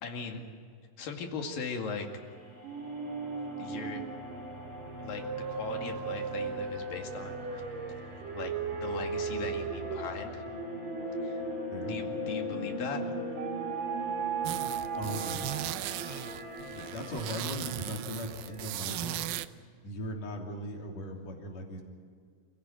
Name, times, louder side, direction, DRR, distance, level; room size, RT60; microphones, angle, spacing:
voice 1, 0.0-0.6 1.0-2.1 3.6-4.0 5.0-7.6 8.0-8.5 8.8-10.5 11.2-11.4 11.8-13.0, left 5 dB, 75° left, 3 dB, 3.9 m, -39 dB
sound 1, 1.9-18.8, left 1 dB, 20° left, 3.2 m, -41 dB
sound 2, 2.6-12.8 13.4-16.1, right 6 dB, 60° right, 2.1 m, -37 dB
sound 3, 14.4-19.5, right 14 dB, 85° right, 2.5 m, -37 dB
voice 2, 15.0-15.5 16.0-16.4 16.7-19.2 19.8-21.8, equal, 50° left, 1 dB, 4.2 m, -39 dB
27.5 x 16.5 x 9.3 m, 2.1 s
omnidirectional pair, 4.1 m